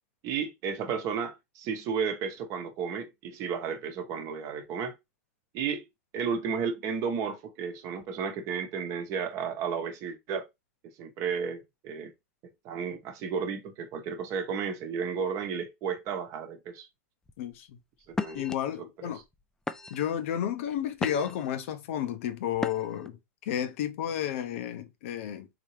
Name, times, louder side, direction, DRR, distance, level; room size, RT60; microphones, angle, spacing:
voice 1, 0.2-5.0 5.5-5.8 6.1-10.5 11.0-12.1 12.6-16.9 18.1-18.4 19.0-19.1, right 6 dB, 40° right, 1.0 m, -33 dB
sound 1, 17.3-17.6 18.1-18.5 19.2-19.3 19.7-20.2 20.7-21.5 22.6-23.1, left 3 dB, 5° left, 0.4 m, -35 dB
voice 2, 17.4-17.8 18.3-19.2 19.9-23.2 23.5-25.5, left 10 dB, 65° left, 0.8 m, -32 dB
3.9 x 2.8 x 3.2 m
hypercardioid pair, 115°, 8 cm